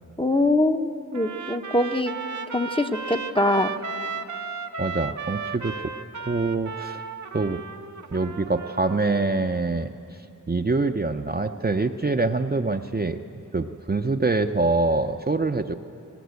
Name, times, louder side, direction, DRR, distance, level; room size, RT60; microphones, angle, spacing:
voice 1, 0.2-2.1 2.5-3.7, left 2 dB, 15° left, 7 dB, 0.7 m, -23 dB
Trumpet, 1.1-9.3, right 5 dB, 65° right, 0.7 m, -35 dB
voice 2, 4.8-5.9 6.3-7.0 7.3-7.6 8.1-9.9 10.5-13.2 13.5-15.7, right 3 dB, 30° right, 6 dB, 0.6 m, -25 dB
19.0 x 17.5 x 8.2 m, 2.9 s
wide cardioid pair, 60°, 32 cm